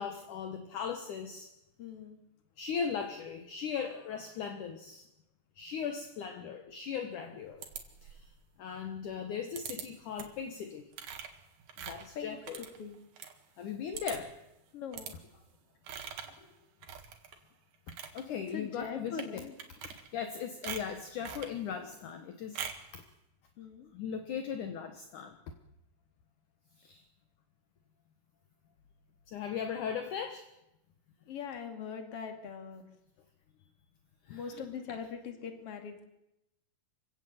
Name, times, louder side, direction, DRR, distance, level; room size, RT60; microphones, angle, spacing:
voice 1, 0.0-1.5 2.6-5.1 5.6-7.7 8.0-8.3 8.6-10.9 11.8-12.6 13.6-14.4 18.1-19.4 19.8-22.6 22.9-23.0 23.9-25.4 26.8-27.0 29.3-30.5 34.3-34.6, left 7 dB, 65° left, 7 dB, 2.6 m, -38 dB
voice 2, 1.8-2.2 12.1-13.0 14.7-15.1 16.4-16.5 18.3-19.5 23.6-23.9 31.3-32.8 34.3-36.0, left 6 dB, 45° left, 6 dB, 3.0 m, -42 dB
sound 1, 7.6-8.3 9.6-9.9 10.2-10.5 10.9-13.3 13.6-13.7 13.9-14.4 14.9-15.2 15.9-16.4 16.8-17.4 17.7-18.2 19.1-19.3 19.6-20.3 20.6-21.6 22.6-22.9, right 8 dB, 75° right, 3.7 m, -43 dB
26.0 x 16.5 x 7.9 m, 0.88 s
omnidirectional pair, 4.3 m